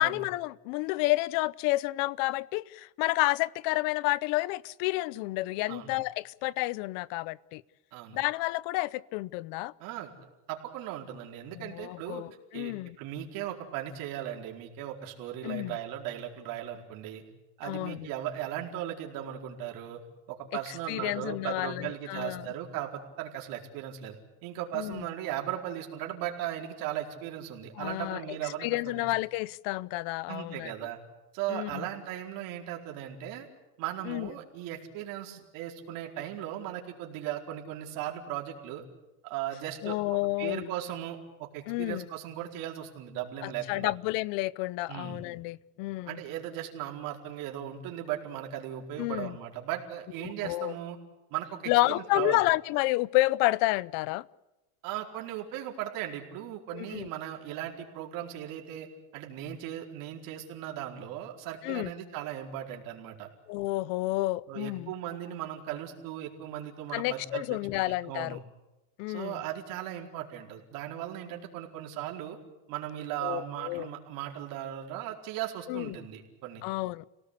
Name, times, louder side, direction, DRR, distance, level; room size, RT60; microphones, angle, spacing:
voice 1, 0.0-7.6 8.1-9.7 11.5-13.0 15.4-15.8 17.6-18.1 20.9-22.5 24.7-25.1 27.8-30.7 31.5-31.8 34.0-34.3 39.8-40.7 41.7-42.1 43.4-46.2 49.0-49.4 50.2-50.8 51.7-54.2 56.7-57.1 61.6-61.9 63.5-64.9 66.9-68.4 69.0-69.4 73.2-73.9 75.7-76.0 76.6-77.1, left 20 dB, 55° left, 0.8 m, -30 dB
voice 2, 9.8-10.1 10.5-12.2 12.5-17.2 17.6-20.0 20.3-24.2 24.4-29.1 30.3-31.0 31.3-33.5 33.8-38.8 39.2-40.0 40.4-43.9 44.9-45.2 46.1-51.0 51.3-52.4 54.8-63.3 64.5-68.4 69.1-72.4 72.7-76.6, right 11 dB, 55° right, 4.5 m, -37 dB
28.5 x 18.0 x 8.3 m
cardioid pair, 155°, 40 cm